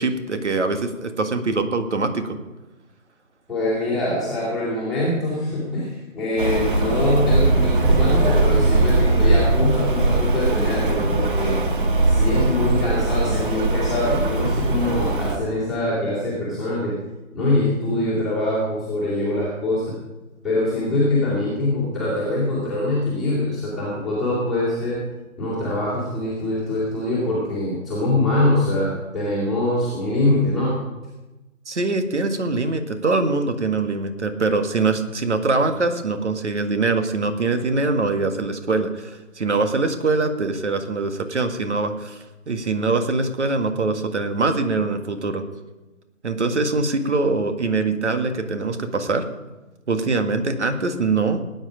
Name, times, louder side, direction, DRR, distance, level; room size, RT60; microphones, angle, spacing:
voice 1, 0.0-2.4 31.7-45.4 46.2-49.2 49.9-51.4, right 3 dB, 55° right, 7 dB, 1.8 m, -23 dB
voice 2, 3.5-11.6 12.1-16.9 17.3-19.9 20.4-25.0 25.4-30.8, left 1 dB, ahead, -13 dB, 2.3 m, -23 dB
Rain, 6.4-15.4, right 2 dB, 40° right, 1.7 m, -20 dB
18.5 x 9.6 x 5.1 m, 1.1 s
figure-of-eight pair, 155°, 41 cm